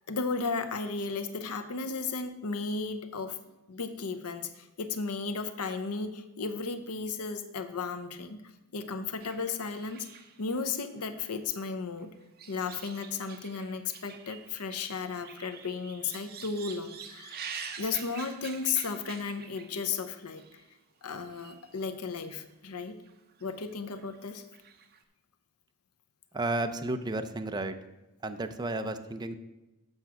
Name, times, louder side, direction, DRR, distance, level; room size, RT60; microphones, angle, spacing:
voice 1, 0.1-3.4 3.7-8.4 8.7-10.1 10.4-12.1 12.5-17.4 17.8-20.6 21.0-22.9 23.4-24.4, left 4 dB, 80° left, 9 dB, 0.7 m, -34 dB
sound 1, 9.2-11.6 12.0-20.0 20.3-20.6 21.3-21.8 22.0-22.1 23.1-23.5 23.7-25.0, right 6 dB, 45° right, 0.8 m, -46 dB
voice 2, 26.3-27.8 28.2-29.3, right 2 dB, 20° right, 7 dB, 0.5 m, -32 dB
8.0 x 6.1 x 5.9 m, 1.0 s
head